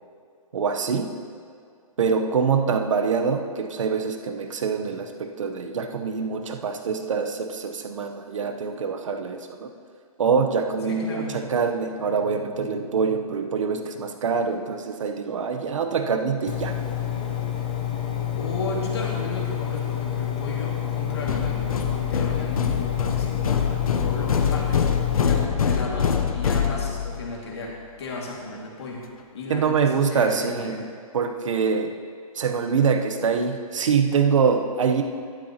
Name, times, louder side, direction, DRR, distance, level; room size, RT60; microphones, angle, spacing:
voice 1, 0.5-1.1 2.0-9.7 10.2-16.7 29.5-30.8 31.1-31.9 32.3-35.0, right 5 dB, 55° right, 6 dB, 0.9 m, -24 dB
voice 2, 10.9-11.3 18.4-24.8 25.2-29.1 29.3-30.9, left 2 dB, 45° left, -2 dB, 2.2 m, -34 dB
Engine, 16.5-25.5, left 10 dB, 15° left, 0.4 m, -28 dB
sound 1, 21.3-27.3, left 7 dB, 70° left, 0.9 m, -25 dB
13.0 x 11.5 x 2.9 m, 2.3 s
hypercardioid pair, 175°, 19 cm